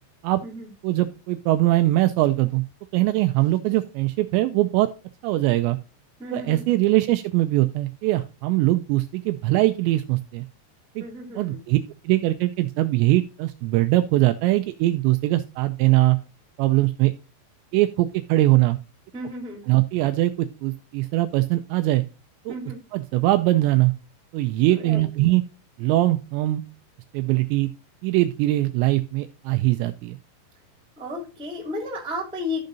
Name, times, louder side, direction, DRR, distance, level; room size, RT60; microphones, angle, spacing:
voice 1, 0.8-2.6 2.9-4.9 5.2-5.8 6.3-10.4 11.0-11.1 11.4-11.8 12.0-16.2 16.6-17.1 17.7-18.8 19.7-20.3 20.6-22.0 22.5-22.6 22.9-23.9 24.3-25.4 25.8-26.6 27.1-27.7 28.0-30.2, right 17 dB, 85° right, 8 dB, 2.6 m, -21 dB
voice 2, 6.2-6.7 11.0-11.6 19.1-19.6 22.5-22.8 24.7-25.0 31.0-32.6, left 2 dB, ahead, -1 dB, 1.2 m, -33 dB
14.5 x 5.2 x 2.6 m, 0.32 s
omnidirectional pair, 5.4 m